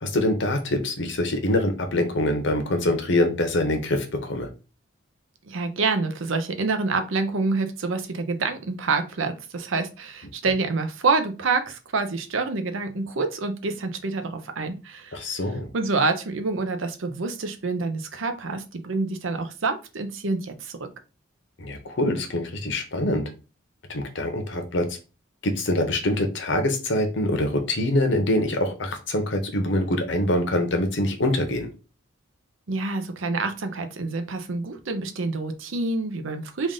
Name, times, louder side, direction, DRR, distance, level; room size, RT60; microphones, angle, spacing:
voice 1, 0.0-4.5 15.1-15.7 21.6-23.3 23.9-24.9 25.4-31.7, left 1 dB, 60° left, 5 dB, 0.8 m, -24 dB
voice 2, 5.4-15.4 15.7-20.9 32.7-36.7, right 3 dB, 70° right, 7 dB, 0.6 m, -27 dB
3.6 x 2.5 x 3.7 m, 0.31 s
head